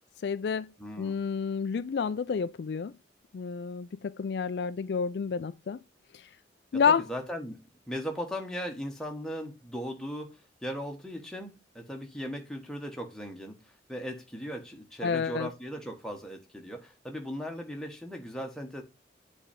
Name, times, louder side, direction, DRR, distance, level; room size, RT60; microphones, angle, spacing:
voice 1, 0.2-0.7 1.0-2.9 3.3-5.8 6.1-6.3 6.7-7.1 15.0-15.5, left 6 dB, 60° left, 0.3 m, -29 dB
voice 2, 0.8-1.2 6.7-10.3 10.6-13.6 13.9-18.8, equal, 5° left, 1.3 m, -38 dB
8.3 x 4.4 x 5.2 m
head